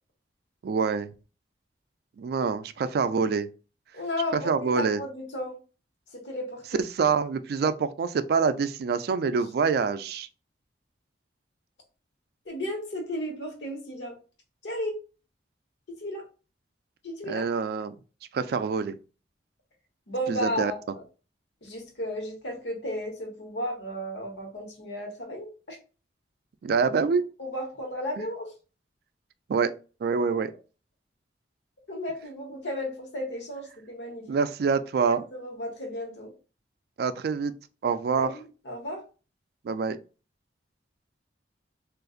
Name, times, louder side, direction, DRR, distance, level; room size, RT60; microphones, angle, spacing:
voice 1, 0.6-1.1 2.2-3.5 4.3-5.0 6.8-10.3 17.3-18.0 18.3-19.0 20.3-20.7 26.6-27.2 28.2-28.3 29.5-29.7 30.0-30.5 34.3-35.2 37.0-37.5 37.8-38.3 39.6-40.0, right 5 dB, 60° right, 0.3 m, -26 dB
voice 2, 3.9-5.6 6.1-6.8 12.4-14.2 14.6-15.0 16.0-16.2 17.0-17.4 20.1-20.8 21.6-25.8 27.4-28.5 31.9-34.4 35.0-36.3 38.2-39.0, equal, 85° left, 1.1 m, -34 dB
3.8 x 2.5 x 2.4 m
head